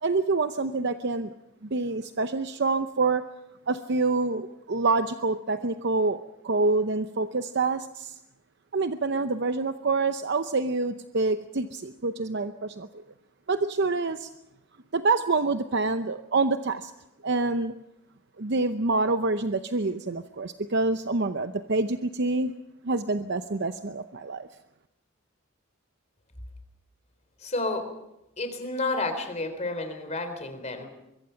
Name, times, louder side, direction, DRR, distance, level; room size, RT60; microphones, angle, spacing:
voice 1, 0.0-1.3 1.6-3.3 3.7-6.2 6.4-8.2 8.7-13.0 13.5-14.3 14.9-16.9 17.2-17.7 18.4-22.5 22.8-24.5, right 3 dB, 55° right, 9 dB, 0.8 m, -26 dB
voice 2, 27.4-27.9 28.4-30.9, left 2 dB, 35° left, 8 dB, 3.7 m, -30 dB
24.5 x 22.5 x 5.8 m, 0.90 s
head